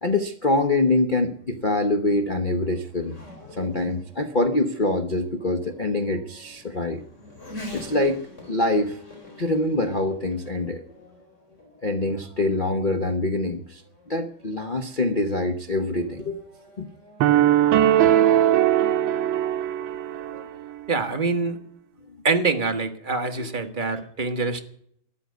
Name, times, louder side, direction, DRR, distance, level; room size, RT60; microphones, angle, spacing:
voice 1, 0.0-3.2 3.5-7.0 7.7-9.0 9.4-10.8 11.8-13.8 14.1-16.4 16.8-16.9 20.3-20.5 23.4-23.5, left 2 dB, 55° left, 5 dB, 0.5 m, -25 dB
Race car auto racing / Accelerating revving vroom, 1.3-17.4, left 2 dB, 30° left, 4.5 m, -46 dB
sound 1, 17.2-20.4, right 11 dB, 70° right, 1.5 m, -19 dB
voice 2, 20.9-21.6 22.2-24.6, right 4 dB, 30° right, 6 dB, 1.1 m, -25 dB
13.0 x 11.0 x 9.3 m, 0.65 s
omnidirectional pair, 2.4 m